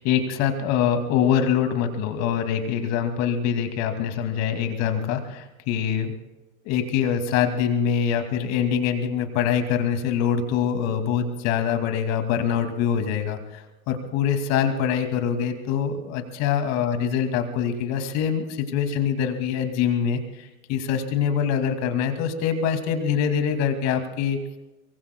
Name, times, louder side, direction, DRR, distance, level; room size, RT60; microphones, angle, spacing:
voice 1, 0.0-6.1 6.6-24.4, left 8 dB, 45° left, 7 dB, 2.4 m, -24 dB
23.5 x 23.5 x 2.2 m, 1.0 s
hypercardioid pair, 95°, 35 cm